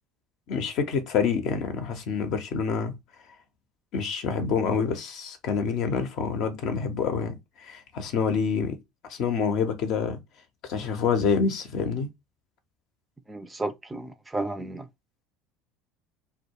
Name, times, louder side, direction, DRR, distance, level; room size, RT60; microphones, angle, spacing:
voice 1, 0.5-3.0 3.9-8.8 9.1-10.2 10.7-12.1, left 6 dB, 55° left, 0.6 m, -27 dB
voice 2, 13.3-14.9, right 2 dB, 15° right, 0.4 m, -33 dB
2.2 x 2.1 x 2.8 m
hypercardioid pair, 70°, 0 cm